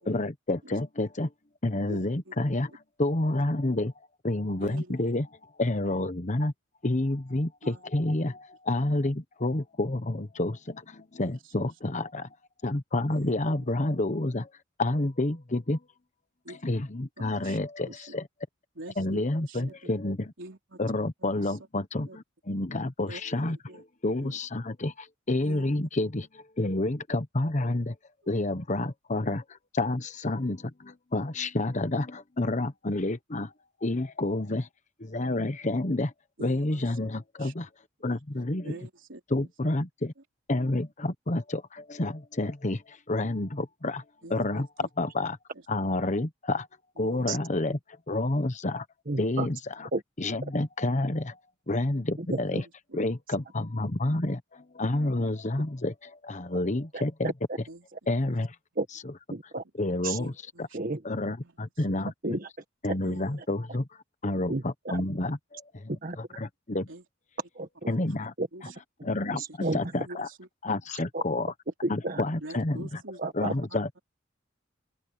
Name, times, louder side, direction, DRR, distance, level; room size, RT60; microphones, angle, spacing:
voice 1, 0.0-1.3 1.6-2.7 3.0-3.9 4.2-5.3 5.6-6.5 6.8-12.3 12.6-14.5 14.8-15.8 16.6-18.3 19.0-20.3 20.8-27.9 28.3-29.4 29.7-33.5 33.8-34.7 35.0-36.1 36.4-37.7 38.0-38.7 39.3-40.1 40.5-44.0 44.3-44.7 45.0-45.4 45.7-46.7 47.0-47.8 48.1-48.9 49.2-49.9 50.2-51.4 51.7-52.6 52.9-57.3 58.1-58.5 59.8-60.3 61.0-62.1 62.8-63.9 64.2-66.9 67.9-68.3 69.0-69.4 69.7-70.3 70.6-71.5 71.9-72.8 73.3-74.0, left 2 dB, 40° left, 1.2 m, -29 dB
voice 2, 1.9-2.4 3.3-3.4 4.6-5.0 5.9-6.0 7.6-7.8 11.2-11.7 13.1-13.3 16.4-16.6 17.2-17.6 17.9-18.1 18.8-19.9 20.4-20.8 21.3-21.6 22.1-22.2 23.1-23.2 23.7-23.8 24.2-24.4 25.4-25.8 36.4-37.1 37.4-37.5 38.6-39.2 44.2-44.9 45.5-45.7 46.0-46.1 47.0-47.4 52.3-52.7 57.7-57.9 58.3-58.4 60.2-61.0 61.4-62.0 63.0-63.4 66.9-67.0 68.5-68.8 69.4-70.5 70.9-71.0 72.4-73.2 73.5-73.8, right 1 dB, 70° right, 3.7 m, -46 dB
voice 3, 49.1-49.5 49.9-50.0 52.3-52.6 56.9-57.3 58.8-58.9 59.3-59.6 60.0-60.2 60.7-61.0 62.2-62.5 62.9-63.0 64.5-64.6 64.9-65.0 65.9-66.4 67.5-67.9 68.4-68.5 69.3-69.8 71.1-71.2 71.8-72.2 73.2-73.5, right 2 dB, 45° right, 1.6 m, -31 dB
open air
head